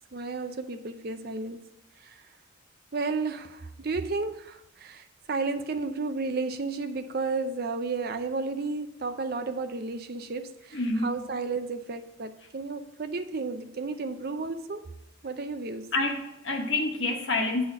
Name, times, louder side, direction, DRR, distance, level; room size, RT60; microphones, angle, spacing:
voice 1, 0.1-1.6 2.0-2.3 2.9-14.9 15.2-15.9, right 3 dB, 45° right, 0.5 m, -33 dB
voice 2, 10.7-11.2 15.9-17.6, left 2 dB, 65° left, 1.3 m, -28 dB
8.0 x 4.2 x 6.8 m
head